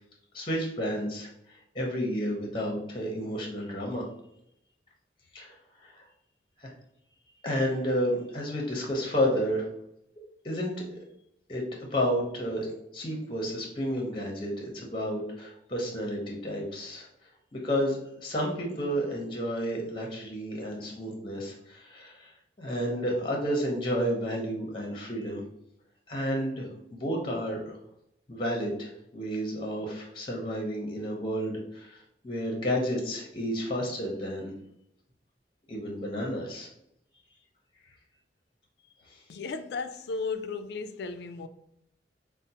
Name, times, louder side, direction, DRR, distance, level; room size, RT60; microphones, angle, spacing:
voice 1, 0.3-4.1 5.3-5.6 5.8-6.1 6.6-6.7 7.4-9.7 10.4-10.7 11.5-17.1 17.5-25.4 26.1-27.8 28.3-32.0 32.2-34.5 35.7-36.7 39.1-39.2, equal, 30° left, 0.6 m, -31 dB
voice 2, 39.3-41.5, left 4 dB, 65° left, 0.3 m, -35 dB
4.9 x 2.0 x 2.7 m
head